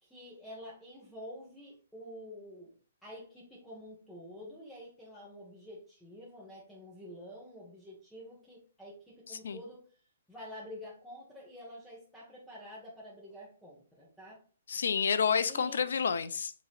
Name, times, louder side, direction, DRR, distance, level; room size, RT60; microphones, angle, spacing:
voice 1, 0.0-2.7 3.0-9.8 10.3-14.4 15.5-15.8, equal, 5° left, 1.5 m, -48 dB
voice 2, 9.3-9.6 14.7-16.5, left 6 dB, 65° left, 0.4 m, -29 dB
7.1 x 3.0 x 2.5 m
figure-of-eight pair, 125°, 0 cm